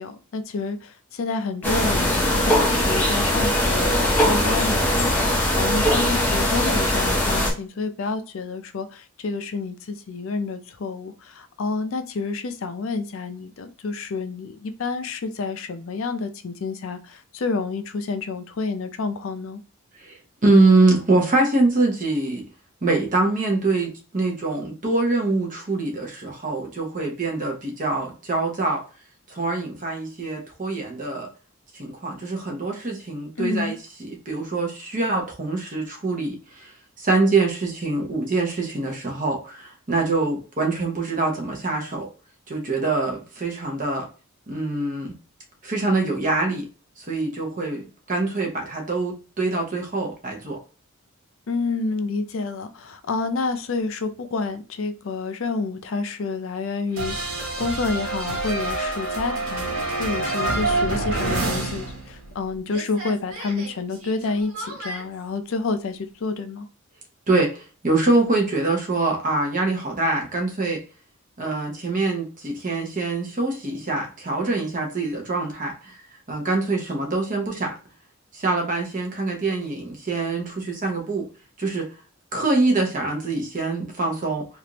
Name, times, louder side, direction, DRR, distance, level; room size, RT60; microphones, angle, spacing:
voice 1, 0.0-19.6 33.4-33.8 51.5-59.7 60.0-66.7, left 4 dB, 65° left, 0.4 m, -29 dB
sound 1, 1.6-7.5, left 1 dB, 10° left, 0.6 m, -21 dB
voice 2, 20.0-22.5 22.8-28.8 29.3-31.3 31.8-42.1 42.5-44.1 44.5-45.1 45.6-46.7 47.0-50.6 67.3-70.8 71.4-76.0 76.3-77.7 78.3-81.3 81.6-81.9 82.3-84.5, right 2 dB, 35° right, 0.8 m, -24 dB
sound 2, 57.0-62.4 62.7-65.0, right 2 dB, 75° right, 1.4 m, -27 dB
3.3 x 2.5 x 2.8 m
head